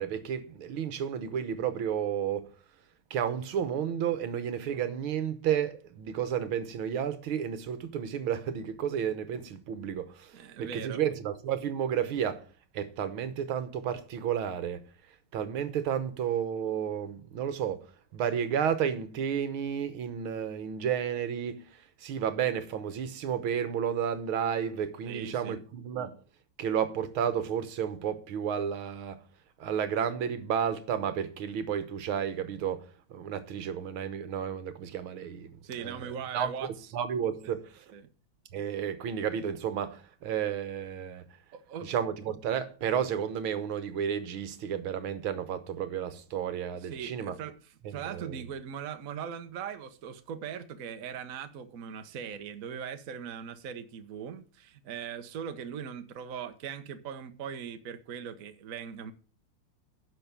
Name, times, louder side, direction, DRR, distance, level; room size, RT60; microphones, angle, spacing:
voice 1, 0.0-2.5 3.1-12.5 12.7-14.8 15.3-17.9 18.1-26.2 26.6-29.2 29.6-35.5 35.8-36.5 36.9-37.9 38.5-41.2 41.8-47.3 47.9-48.4, right 8 dB, 75° right, 1.9 m, -32 dB
voice 2, 10.3-11.0 25.0-25.6 35.6-36.7 37.4-37.6 37.9-38.1 41.5-41.9 46.8-47.6 47.9-59.1, right 8 dB, 50° right, 1.2 m, -40 dB
10.5 x 6.4 x 6.8 m
omnidirectional pair, 2.3 m